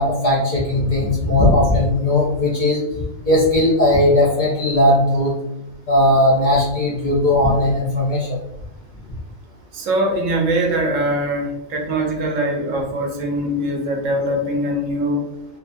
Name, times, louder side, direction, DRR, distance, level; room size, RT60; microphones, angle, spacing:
voice 1, 0.0-2.8 3.3-5.3 5.9-8.4, left 1 dB, 50° left, -4 dB, 0.6 m, -17 dB
voice 2, 9.7-15.3, right 1 dB, 80° right, 1 dB, 1.0 m, -22 dB
2.5 x 2.3 x 2.5 m, 0.87 s
omnidirectional pair, 1.3 m